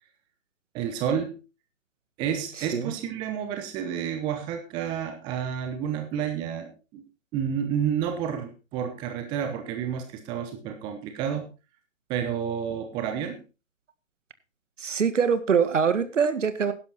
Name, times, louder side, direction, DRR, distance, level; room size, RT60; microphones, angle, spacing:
voice 1, 0.7-1.4 2.2-7.1 7.3-11.5 12.1-13.4, right 8 dB, 10° right, 0.9 m, -30 dB
voice 2, 2.6-2.9 14.8-16.7, right 6 dB, 60° right, 1.8 m, -24 dB
12.0 x 11.0 x 4.1 m
figure-of-eight pair, 140°, 41 cm